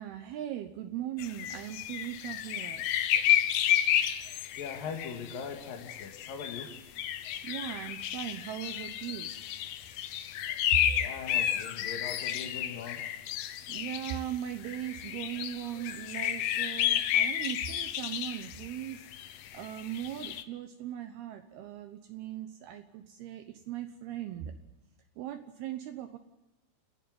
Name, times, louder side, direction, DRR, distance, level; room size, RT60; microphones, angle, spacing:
voice 1, 0.0-2.8 7.4-9.3 10.7-10.8 13.7-19.1 19.5-24.5 25.2-26.2, right 11 dB, 75° right, 8 dB, 2.6 m, -39 dB
sound 1, 1.2-14.2 14.6-20.4, left 11 dB, 75° left, 2.0 m, -31 dB
voice 2, 4.6-6.7 11.0-13.0, left 6 dB, 60° left, 2 dB, 3.2 m, -40 dB
29.5 x 11.5 x 9.5 m, 1.0 s
omnidirectional pair, 5.1 m